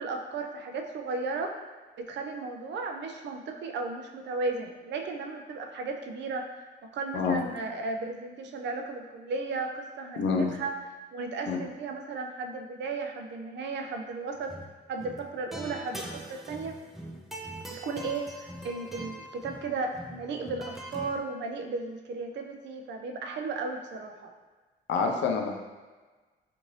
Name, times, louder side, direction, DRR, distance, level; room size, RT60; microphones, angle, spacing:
voice 1, 0.0-1.5 2.0-6.4 6.9-10.8 11.1-14.6 14.9-16.8 17.7-24.3, right 3 dB, 65° right, 4 dB, 0.4 m, -35 dB
voice 2, 10.2-10.5 11.5-11.6 24.9-25.6, left 5 dB, 65° left, 2 dB, 0.5 m, -27 dB
sound 1, 14.4-14.7 15.0-21.2, right 1 dB, ahead, 0.4 m, -42 dB
2.6 x 2.5 x 3.1 m, 1.3 s
cardioid pair, 90°, 20 cm